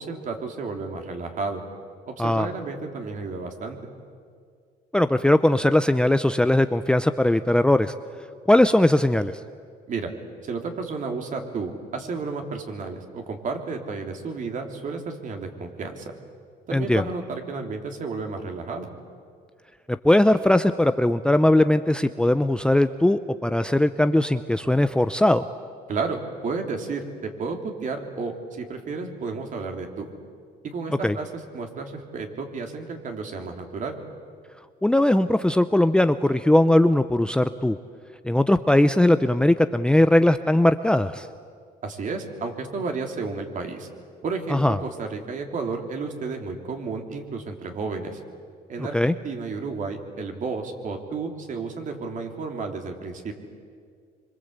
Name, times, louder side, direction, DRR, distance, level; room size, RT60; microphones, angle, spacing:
voice 1, 0.0-1.6 2.1-3.8 9.9-10.1 10.5-16.1 16.7-18.9 25.9-27.0 27.4-30.1 30.6-31.3 31.5-34.0 41.8-43.9 44.2-48.2 48.7-53.3, right 4 dB, 50° right, 3 dB, 3.5 m, -32 dB
voice 2, 4.9-7.9 8.5-9.3 16.7-17.0 20.0-25.5 31.0-31.2 34.8-37.8 38.2-41.3 44.5-44.8 48.8-49.1, left 1 dB, 5° left, 10 dB, 0.6 m, -19 dB
25.5 x 25.5 x 8.2 m, 2.1 s
cardioid pair, 110°, 17 cm